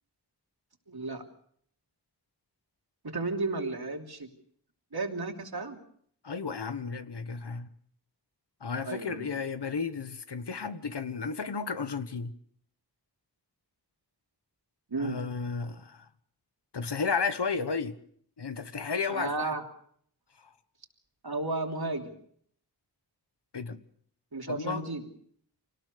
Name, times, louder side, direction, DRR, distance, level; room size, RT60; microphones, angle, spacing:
voice 1, 0.9-1.2 3.0-4.3 4.9-5.8 8.8-9.3 14.9-15.2 19.1-19.6 21.2-22.2 24.3-25.0, right 3 dB, 65° right, 3.1 m, -33 dB
voice 2, 6.2-7.7 8.6-12.3 15.0-16.0 16.7-17.9 18.4-19.5 23.5-23.8 24.5-24.9, left 5 dB, 85° left, 1.3 m, -33 dB
24.5 x 18.5 x 6.7 m
wide cardioid pair, 50°, 40 cm